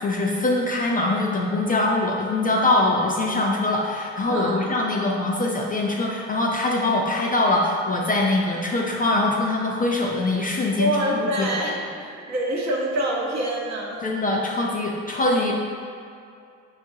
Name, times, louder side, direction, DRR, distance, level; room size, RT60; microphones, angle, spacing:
voice 1, 0.0-11.5 14.0-15.5, left 2 dB, 25° left, -2 dB, 0.4 m, -23 dB
voice 2, 4.3-4.6 10.8-14.1, right 1 dB, 45° right, -2 dB, 0.9 m, -26 dB
5.7 x 2.4 x 2.7 m, 2.4 s
hypercardioid pair, 60°, 37 cm